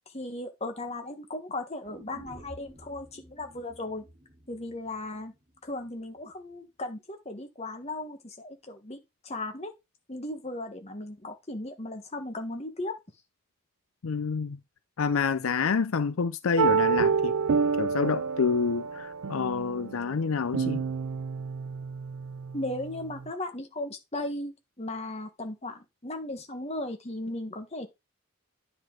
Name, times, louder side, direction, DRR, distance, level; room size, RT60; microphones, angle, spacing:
voice 1, 0.1-4.0 4.5-5.3 5.6-9.7 10.1-13.0 22.5-27.9, left 2 dB, 30° left, 1.4 m, -36 dB
sound 1, 1.8-5.9 6.2-6.3, right 1 dB, 30° right, 3.3 m, -51 dB
voice 2, 14.0-14.6 15.0-17.4 17.8-20.8, left 5 dB, 80° left, 0.5 m, -28 dB
sound 2, 16.6-23.3, right 6 dB, 90° right, 0.4 m, -29 dB
9.9 x 5.2 x 3.8 m
head